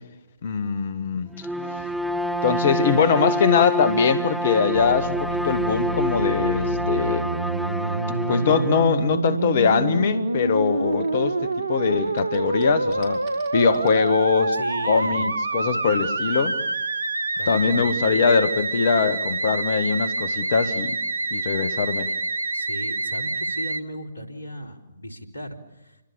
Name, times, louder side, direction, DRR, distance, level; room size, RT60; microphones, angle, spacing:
voice 1, 0.4-1.3 2.4-7.2 8.1-11.4 11.7-13.2 13.5-14.5 14.8-16.6 17.5-21.0 21.3-22.1, left 5 dB, 50° left, 2.1 m, -22 dB
Bowed string instrument, 1.4-8.9, equal, ahead, 0.9 m, -27 dB
Musical instrument, 4.7-23.8, right 3 dB, 75° right, 1.2 m, -27 dB
sound 1, 7.3-11.6 11.9-14.1, right 3 dB, 30° right, 6.0 m, -48 dB
voice 2, 14.5-15.3 17.4-17.9 22.5-26.0, equal, 80° left, 4.0 m, -36 dB
28.0 x 25.5 x 7.5 m
figure-of-eight pair, 130°, 0 cm